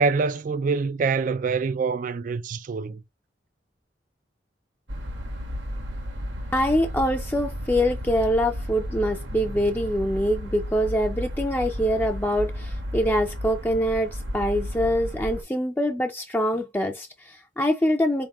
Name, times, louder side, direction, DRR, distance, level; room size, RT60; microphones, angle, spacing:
voice 1, 0.0-3.0, right 4 dB, 45° right, 0.3 m, -25 dB
sound 1, 4.9-15.4, equal, 85° right, 1.6 m, -33 dB
voice 2, 6.5-18.3, equal, 10° left, 0.5 m, -24 dB
4.4 x 3.6 x 3.0 m
head